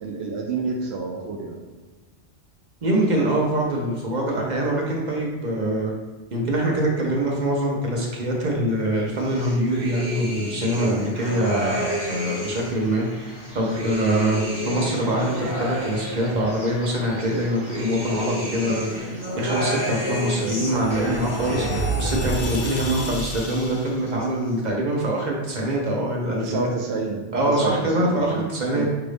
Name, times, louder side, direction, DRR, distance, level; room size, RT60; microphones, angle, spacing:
voice 1, 0.0-1.6 5.6-5.8 10.8-10.9 13.9-14.0 20.4-20.5 21.6-21.8 22.5-22.6 24.6-24.7 26.4-27.2 27.5-28.4 28.7-28.9, right 4 dB, 70° right, 0 dB, 0.9 m, -29 dB
voice 2, 2.8-5.9 6.3-26.7 27.3-28.9, right 1 dB, 45° right, -1 dB, 0.9 m, -24 dB
sound 1, 9.2-12.8 13.3-16.7 17.2-22.0 22.3-23.2 23.5-24.2, equal, 15° right, 1.2 m, -31 dB
sound 2, 11.1-19.0, equal, 80° left, 1.8 m, -44 dB
sound 3, 19.5-24.0, right 1 dB, 50° left, 0.9 m, -30 dB
5.8 x 2.6 x 3.3 m, 1.3 s
omnidirectional pair, 1.2 m